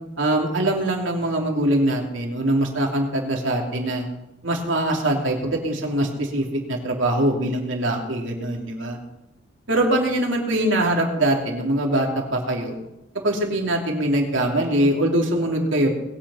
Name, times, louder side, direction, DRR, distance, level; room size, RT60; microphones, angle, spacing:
voice 1, 0.2-4.0 4.4-9.0 9.7-12.7 13.2-15.9, right 1 dB, 85° right, 1 dB, 3.0 m, -22 dB
21.0 x 8.7 x 5.6 m, 0.94 s
head